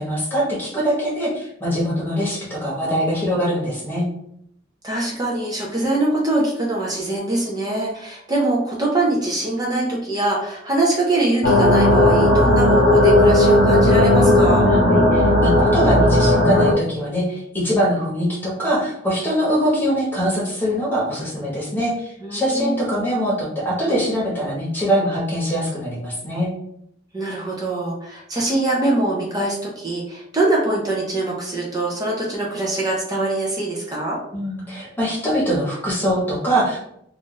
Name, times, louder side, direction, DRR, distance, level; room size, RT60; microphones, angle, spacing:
voice 1, 0.0-4.1 14.6-26.5 34.3-36.8, equal, 10° left, -5 dB, 1.1 m, -23 dB
voice 2, 4.8-14.7 22.2-22.7 27.1-34.2, right 2 dB, 20° right, -3 dB, 0.6 m, -23 dB
sound 1, 11.4-16.7, left 1 dB, 70° left, 0.7 m, -15 dB
2.5 x 2.5 x 3.8 m, 0.74 s
head